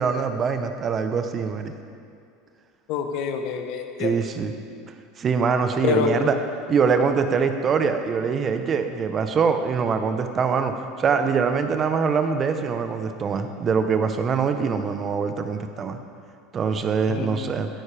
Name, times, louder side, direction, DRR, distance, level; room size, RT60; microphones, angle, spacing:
voice 1, 0.0-1.7 4.0-4.5 5.2-6.4 6.7-16.0 16.5-17.7, right 5 dB, 35° right, 8 dB, 0.9 m, -23 dB
voice 2, 2.9-4.1 5.8-6.3 17.1-17.7, left 7 dB, 60° left, 6 dB, 1.0 m, -26 dB
15.0 x 9.7 x 3.4 m, 2.4 s
hypercardioid pair, 80°, 0 cm